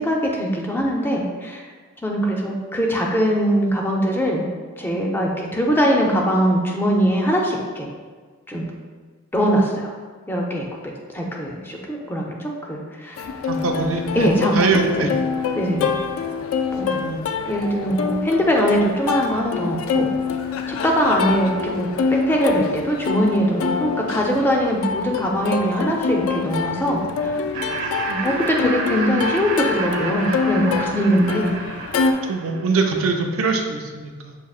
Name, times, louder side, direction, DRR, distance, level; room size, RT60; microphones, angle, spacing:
voice 1, 0.0-1.7 2.0-4.4 4.8-7.9 8.5-8.7 9.3-9.9 10.3-10.7 11.1-13.3 14.2-14.7 15.0-15.2 15.5-15.9 16.7-17.0 17.5-20.1 20.7-27.4 28.1-31.5, equal, 10° left, -1 dB, 0.4 m, -21 dB
Plucked string instrument, 13.2-32.1, left 5 dB, 85° left, 0.3 m, -26 dB
voice 2, 13.4-15.1 16.8-17.2 17.8-18.0 32.3-34.4, right 3 dB, 80° right, 3 dB, 0.5 m, -23 dB
Laughter, 27.5-32.8, right 4 dB, 60° right, 1.0 m, -30 dB
6.4 x 2.8 x 2.4 m, 1.5 s
head